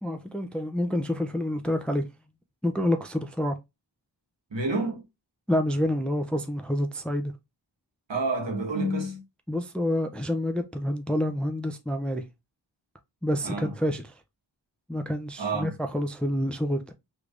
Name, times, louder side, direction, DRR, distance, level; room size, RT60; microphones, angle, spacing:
voice 1, 0.0-2.0 2.6-3.6 5.5-7.3 9.5-12.2 13.2-14.1 14.9-16.9, left 1 dB, ahead, 0.4 m, -28 dB
voice 2, 4.5-5.0 8.1-9.2 13.4-13.7 15.4-15.7, right 2 dB, 65° right, 1.5 m, -28 dB
3.3 x 3.2 x 2.5 m
cardioid pair, 45°, 47 cm